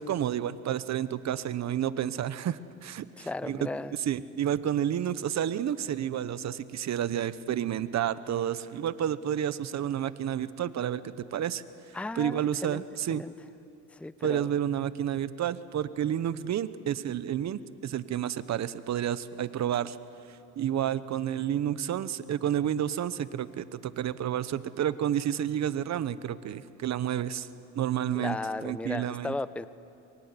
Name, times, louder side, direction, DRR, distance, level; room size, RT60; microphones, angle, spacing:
voice 1, 0.0-3.7 4.0-11.6 12.2-13.2 14.2-20.0 20.6-27.5 27.7-29.3, right 10 dB, 65° right, 14 dB, 1.1 m, -30 dB
voice 2, 3.2-4.0 11.9-12.8 13.1-13.3 13.9-14.5 28.1-29.7, left 2 dB, 5° left, 16 dB, 0.6 m, -35 dB
23.5 x 23.0 x 9.8 m, 2.8 s
cardioid pair, 90°, 30 cm